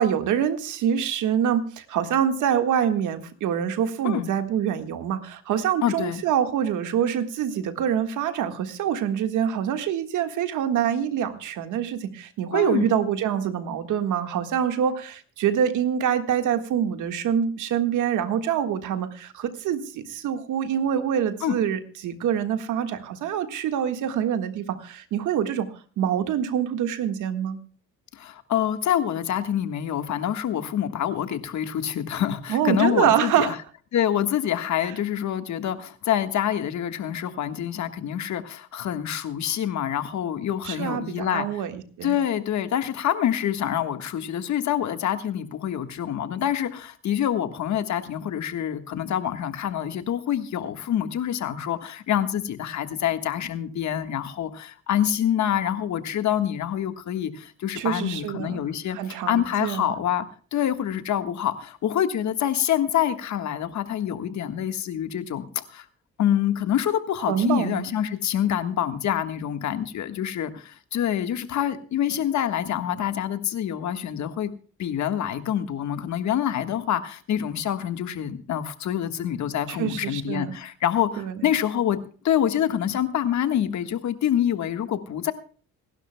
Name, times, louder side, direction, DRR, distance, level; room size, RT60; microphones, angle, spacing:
voice 1, 0.0-27.6 32.5-33.5 40.6-42.1 57.7-58.6 58.9-59.9 67.3-67.8 79.7-80.5 81.2-81.4, right 9 dB, 80° right, 8 dB, 1.6 m, -25 dB
voice 2, 5.8-6.2 12.5-12.9 21.4-21.6 28.1-33.6 33.9-41.6 42.0-60.2 60.5-65.8 66.2-74.5 74.8-82.0 82.2-85.3, left 10 dB, 70° left, 9 dB, 1.5 m, -26 dB
26.5 x 12.0 x 2.2 m, 0.41 s
cardioid pair, 90°, 30 cm